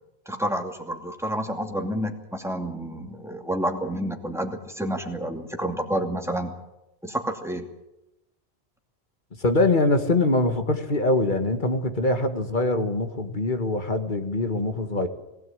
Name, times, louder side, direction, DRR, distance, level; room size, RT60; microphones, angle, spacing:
voice 1, 0.3-6.5 7.0-7.7, right 1 dB, ahead, 3 dB, 2.4 m, -29 dB
voice 2, 9.4-15.1, left 2 dB, 50° left, 7 dB, 2.0 m, -23 dB
21.5 x 16.5 x 8.8 m, 0.94 s
omnidirectional pair, 1.1 m